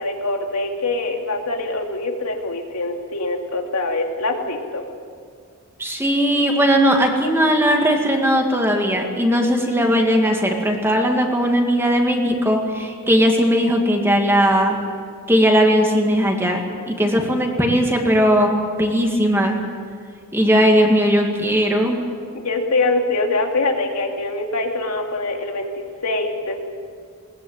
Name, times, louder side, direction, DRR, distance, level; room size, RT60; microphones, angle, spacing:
voice 1, 0.0-4.8 22.3-25.7 26.0-26.6, left 2 dB, 85° left, 2 dB, 2.7 m, -24 dB
voice 2, 5.8-14.8 15.3-19.6 20.3-22.0, equal, 10° right, 2 dB, 2.4 m, -18 dB
21.0 x 19.5 x 9.1 m, 2.1 s
head